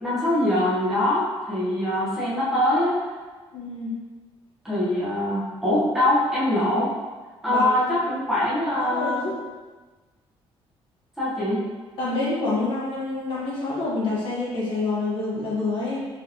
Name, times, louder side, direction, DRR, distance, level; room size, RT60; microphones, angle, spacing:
voice 1, 0.0-2.9 4.6-6.9 7.4-9.3 11.2-11.7, left 1 dB, 5° right, -10 dB, 1.0 m, -23 dB
voice 2, 3.5-3.9 7.5-8.0 8.8-9.4 12.0-16.0, left 3 dB, 60° left, -7 dB, 1.3 m, -27 dB
4.0 x 3.1 x 2.9 m, 1.3 s
cardioid pair, 160°, 10 cm